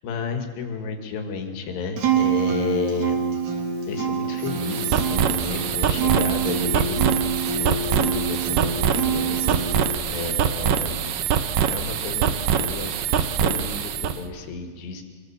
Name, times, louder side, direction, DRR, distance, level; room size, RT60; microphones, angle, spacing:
voice 1, 0.0-3.1 3.9-7.0 7.6-11.1 11.7-15.0, left 5 dB, 65° left, 5 dB, 4.1 m, -32 dB
Acoustic guitar, 2.0-9.9, right 5 dB, 45° right, 3.4 m, -26 dB
sound 1, 4.4-14.2, right 8 dB, 75° right, 2.0 m, -24 dB
25.5 x 22.0 x 7.4 m, 1.5 s
omnidirectional pair, 5.4 m